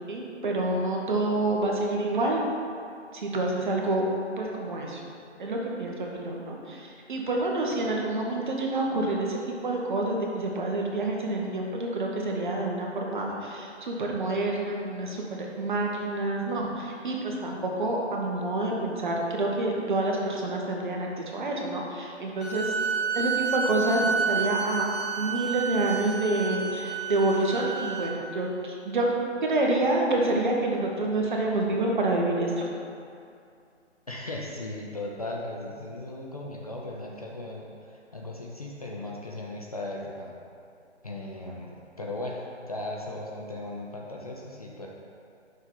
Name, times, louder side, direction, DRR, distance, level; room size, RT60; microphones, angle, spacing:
voice 1, 0.1-2.4 3.1-4.1 4.4-5.0 5.4-22.7 23.1-24.9 25.2-29.1 29.4-32.7, right 2 dB, 40° right, -1 dB, 0.9 m, -28 dB
sound 1, 22.4-28.1, right 5 dB, 65° left, 1.2 m, -30 dB
voice 2, 34.1-40.3 41.0-42.4 42.7-44.9, left 2 dB, 35° left, -2 dB, 0.4 m, -37 dB
6.3 x 4.3 x 3.7 m, 2.4 s
figure-of-eight pair, 150°, 35 cm